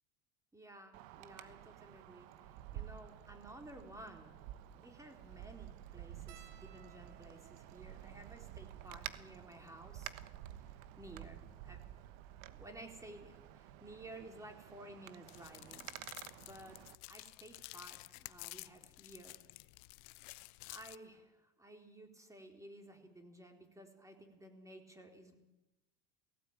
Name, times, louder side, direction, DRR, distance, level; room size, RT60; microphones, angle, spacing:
voice 1, 0.5-4.3 4.7-10.1 11.0-11.8 12.4-15.9 16.4-16.8 17.1-19.4 20.7-25.4, right 1 dB, 10° right, 4 dB, 4.0 m, -54 dB
Wind, 0.9-17.0, right 12 dB, 75° right, 1.3 m, -51 dB
sound 1, 6.3-10.9 11.6-11.7 11.9-12.1 13.4-13.6 15.0-15.1 15.4-15.6, right 9 dB, 50° right, 3.4 m, -64 dB
sound 2, 15.3-20.9, left 23 dB, 75° left, 0.8 m, -52 dB
18.5 x 16.5 x 8.9 m, 0.97 s
supercardioid pair, 110°, 31 cm